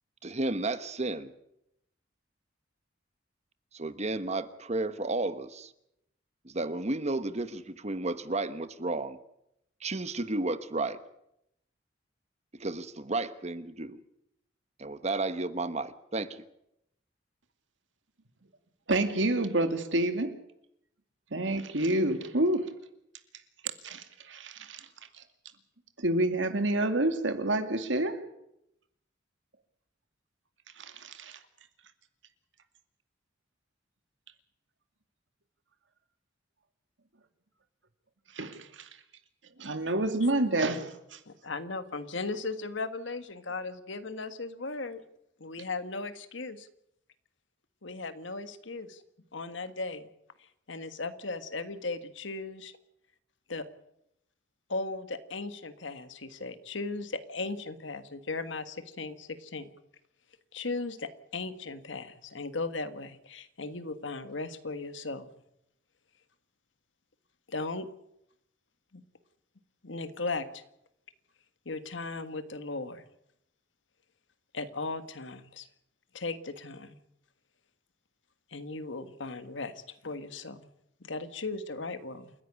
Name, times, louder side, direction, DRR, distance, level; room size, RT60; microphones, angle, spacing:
voice 1, 0.2-1.3 3.7-5.7 6.4-9.2 9.8-11.0 12.6-14.0 14.8-16.4, right 2 dB, 35° right, 12 dB, 1.2 m, -32 dB
voice 2, 18.9-20.4 21.3-22.7 23.8-24.9 26.0-28.2 30.8-31.4 38.3-38.9 39.6-41.2, right 1 dB, 75° right, 8 dB, 2.4 m, -28 dB
voice 3, 41.3-45.0 45.4-46.7 47.8-49.0 49.3-50.1 50.7-52.7 53.5-53.7 54.7-59.7 60.5-65.3 67.5-67.9 68.9-69.0 69.8-70.6 71.6-73.0 74.5-75.7 76.1-77.0 78.5-80.7 81.0-82.3, left 3 dB, 75° left, 11 dB, 1.6 m, -37 dB
28.5 x 11.0 x 9.8 m, 0.81 s
head